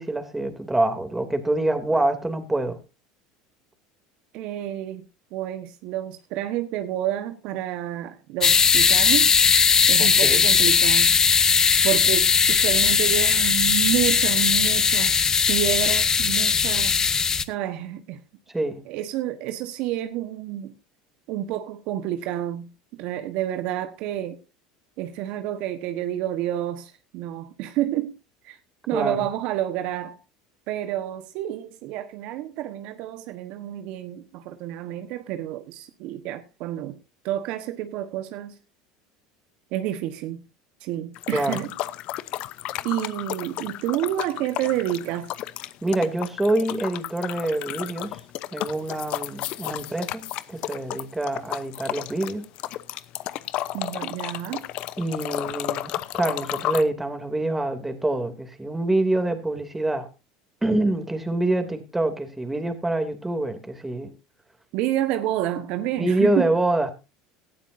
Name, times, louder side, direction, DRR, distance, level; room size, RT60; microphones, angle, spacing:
voice 1, 0.0-2.8 10.0-10.4 18.5-18.8 28.9-29.3 41.3-41.6 45.8-48.2 48.5-52.5 55.0-60.1 60.6-64.1 66.0-66.9, right 2 dB, 10° right, 2.8 m, -26 dB
voice 2, 4.3-5.1 5.3-9.3 9.9-11.2 11.8-17.0 17.5-18.2 18.9-20.7 21.3-24.4 25.0-28.1 28.4-28.6 28.9-30.2 30.7-36.9 37.2-38.6 39.7-40.4 40.8-41.7 42.8-45.3 53.7-54.7 64.7-66.5, right 12 dB, 65° right, 1.3 m, -29 dB
sound 1, 8.4-17.4, left 5 dB, 30° left, 0.9 m, -19 dB
sound 2, 41.1-56.8, left 15 dB, 60° left, 0.8 m, -33 dB
18.0 x 12.5 x 2.7 m
hypercardioid pair, 85°, 2 cm